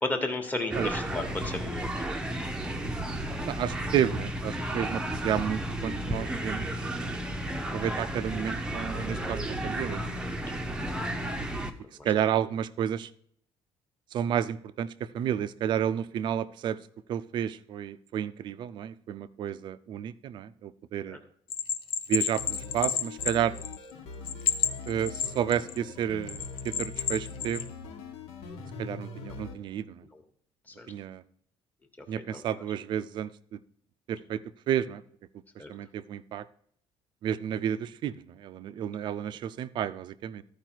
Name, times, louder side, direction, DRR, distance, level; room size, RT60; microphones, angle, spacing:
voice 1, 0.0-2.1 10.7-11.0 12.0-12.1 21.1-21.2 30.1-30.2 30.7-30.9 32.1-32.6 35.6-35.7, left 2 dB, 15° left, 5 dB, 1.2 m, -34 dB
sound 1, 0.7-11.7, right 1 dB, 10° right, 0.7 m, -33 dB
voice 2, 3.4-7.2 7.7-10.2 10.6-10.7 12.0-13.1 14.1-14.9 15.1-16.8 17.1-21.2 22.1-23.5 24.9-27.6 28.8-30.0 30.9-31.2 32.1-33.6 34.1-34.4 34.7-35.0 35.7-36.4 37.2-40.4, right 9 dB, 50° right, 15 dB, 0.5 m, -31 dB
Bell, 21.5-23.9 24.2-25.8 26.3-27.7, left 8 dB, 60° left, 0.7 m, -30 dB
sound 2, 22.4-29.6, left 4 dB, 80° left, 1.5 m, -42 dB
14.0 x 5.0 x 4.5 m, 0.66 s
cardioid pair, 165°, 10 cm